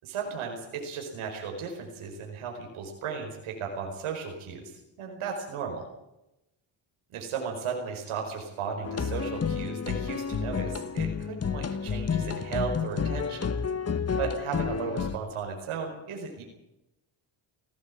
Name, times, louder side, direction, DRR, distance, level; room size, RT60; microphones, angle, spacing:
voice 1, 0.0-5.9 7.1-13.5 14.2-16.4, right 6 dB, 85° right, 2 dB, 4.9 m, -35 dB
sound 1, 8.8-15.2, left 6 dB, 30° left, 1.2 m, -30 dB
17.5 x 17.5 x 8.6 m, 0.91 s
cardioid pair, 65°, 49 cm